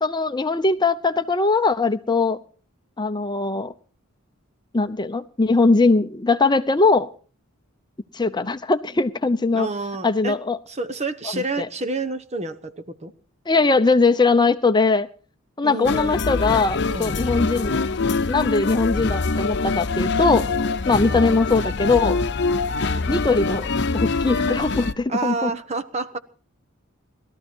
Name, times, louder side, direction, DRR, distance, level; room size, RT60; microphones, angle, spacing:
voice 1, 0.0-2.4 3.0-3.7 4.7-7.1 8.1-9.7 10.0-10.6 11.3-11.7 13.5-15.1 15.6-17.8 18.3-20.5 20.9-22.2 23.1-25.5, left 3 dB, 20° left, 10 dB, 0.8 m, -20 dB
voice 2, 9.5-10.4 10.7-13.1 15.6-16.2 16.9-17.2 21.1-21.3 25.1-26.2, right 3 dB, 30° right, 9 dB, 1.1 m, -29 dB
sound 1, 15.8-24.9, left 4 dB, 55° left, 0.8 m, -24 dB
20.5 x 13.5 x 4.5 m, 0.41 s
head